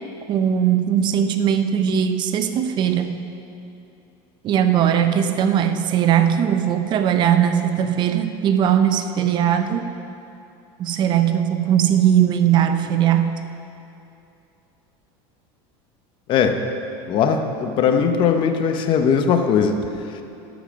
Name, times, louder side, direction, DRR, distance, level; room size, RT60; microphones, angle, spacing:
voice 1, 0.3-3.2 4.4-9.9 10.8-13.4, right 9 dB, 35° right, 8 dB, 0.6 m, -19 dB
voice 2, 16.3-16.6 17.1-20.2, left 6 dB, 40° left, 7 dB, 0.9 m, -19 dB
11.5 x 8.6 x 6.3 m, 2.8 s
supercardioid pair, 155°, 13 cm